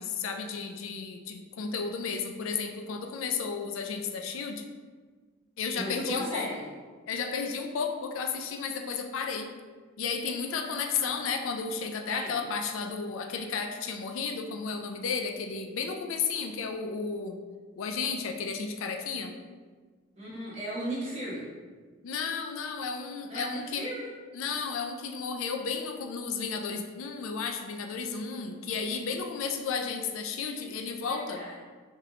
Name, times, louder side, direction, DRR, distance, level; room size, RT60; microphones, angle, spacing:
voice 1, 0.0-4.6 5.6-6.5 7.1-9.5 10.0-17.4 17.8-19.3 22.0-23.9 24.3-31.4, left 5 dB, 70° left, 4 dB, 0.4 m, -33 dB
voice 2, 5.7-6.6 10.5-11.2 12.1-12.4 20.2-21.5 23.3-24.1 31.1-31.6, equal, 30° right, -6 dB, 1.1 m, -36 dB
3.7 x 3.1 x 2.8 m, 1.5 s
head